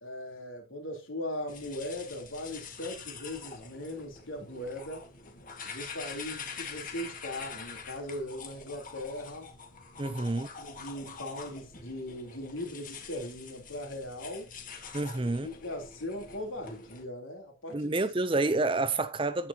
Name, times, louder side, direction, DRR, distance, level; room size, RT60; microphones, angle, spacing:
voice 1, 0.0-5.0 5.6-9.5 10.0-10.2 10.6-14.5 15.4-18.0, left 1 dB, 85° left, 3.6 m, -39 dB
sound 1, 1.5-17.0, left 5 dB, 40° left, 1.9 m, -45 dB
voice 2, 10.0-10.5 14.9-15.5 17.7-19.5, right 2 dB, 25° right, 0.6 m, -28 dB
10.0 x 9.0 x 2.9 m
head